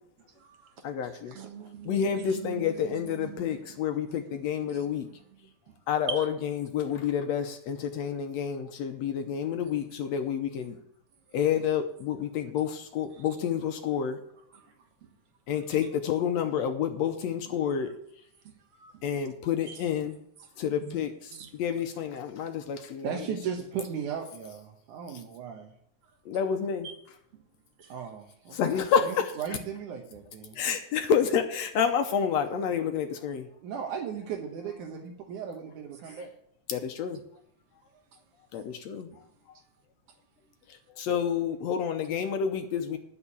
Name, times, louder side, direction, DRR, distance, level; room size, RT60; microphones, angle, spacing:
voice 1, 0.3-0.8 1.3-3.8 4.3-5.7 6.1-6.3 11.3-11.4 13.1-13.2 13.5-13.7 14.5-14.9 15.5-15.8 17.8-17.9 18.4-19.0 19.7-19.9 20.4-21.0 21.3-21.5 26.8-27.0 27.3-27.4 27.8-28.1 32.5-32.6 36.0-36.2 37.1-37.2 37.9-38.0 39.1-39.4, right 7 dB, 55° right, 2.2 m, -45 dB
voice 2, 0.8-1.4 1.9-5.1 5.9-6.3 6.6-10.8 11.3-14.2 15.5-17.9 19.0-20.2 20.6-21.1 21.5-23.2 25.1-25.2 26.3-26.9 28.5-29.3 30.6-33.5 36.1-36.2 36.7-37.2 38.5-39.1 40.7-43.0, left 8 dB, 70° left, 1.9 m, -29 dB
voice 3, 23.0-25.7 27.9-30.0 30.5-30.6 33.6-36.3, right 7 dB, 90° right, 2.6 m, -36 dB
9.8 x 6.6 x 8.4 m
omnidirectional pair, 3.4 m